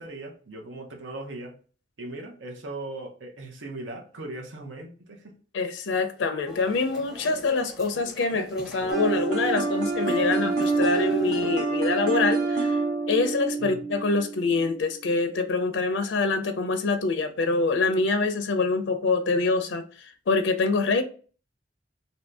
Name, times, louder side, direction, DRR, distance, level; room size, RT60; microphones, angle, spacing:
voice 1, 0.0-1.5 2.0-5.3 13.6-13.8, right 2 dB, 85° right, 0.7 m, -38 dB
voice 2, 5.5-12.8 13.1-21.0, left 3 dB, 75° left, 0.5 m, -25 dB
sound 1, 6.5-11.6, left 1 dB, 5° right, 0.6 m, -45 dB
sound 2, 8.9-14.7, right 3 dB, 50° right, 0.7 m, -27 dB
2.8 x 2.6 x 3.3 m
head